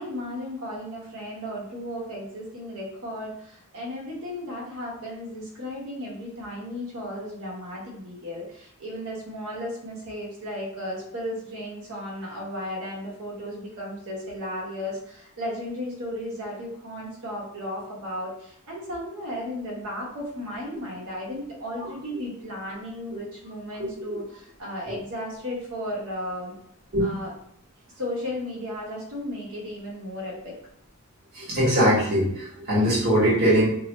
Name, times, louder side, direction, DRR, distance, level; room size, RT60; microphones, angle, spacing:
voice 1, 0.0-26.5 27.0-27.3 27.9-30.6, left 1 dB, 80° right, -4 dB, 1.1 m, -35 dB
voice 2, 31.3-33.7, equal, 45° right, -8 dB, 1.3 m, -21 dB
2.9 x 2.0 x 3.0 m, 0.70 s
head